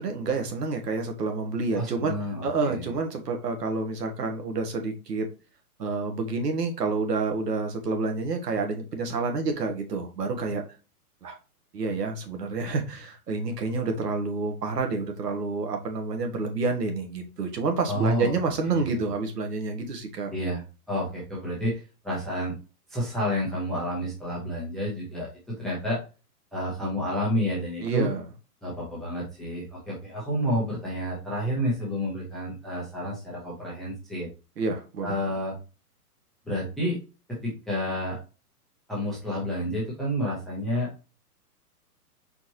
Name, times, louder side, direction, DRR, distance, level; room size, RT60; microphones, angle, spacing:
voice 1, 0.0-2.1 2.4-5.3 5.8-10.6 11.2-11.4 11.7-20.3 27.8-28.2 34.6-35.2, right 3 dB, 85° right, 4 dB, 1.7 m, -28 dB
voice 2, 1.8-2.9 17.9-18.3 18.6-19.0 20.3-20.6 20.9-22.6 22.9-26.0 26.5-28.1 28.6-34.3 35.0-35.6 36.5-37.0 37.3-38.2 38.9-41.1, equal, ahead, -6 dB, 0.5 m, -30 dB
4.5 x 4.2 x 2.8 m, 0.31 s
hypercardioid pair, 145°, 47 cm